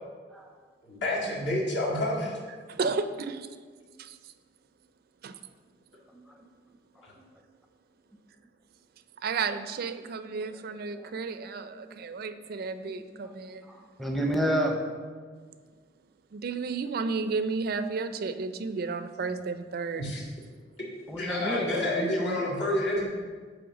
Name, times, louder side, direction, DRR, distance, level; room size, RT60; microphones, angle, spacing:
voice 1, 0.9-2.4 7.0-7.1 10.4-10.5 10.9-11.1 11.7-12.0 13.2-13.6 15.0-15.3 18.1-18.2 19.8-20.2 21.1-23.0, left 1 dB, 70° left, -5 dB, 2.0 m, -30 dB
voice 2, 2.7-3.5 4.0-4.2 5.2-5.4 9.2-13.6 16.3-20.0, right 4 dB, 55° right, 10 dB, 0.4 m, -32 dB
voice 3, 13.7-14.8 21.1-22.4, equal, ahead, 1 dB, 0.6 m, -29 dB
8.6 x 3.2 x 6.1 m, 1.6 s
head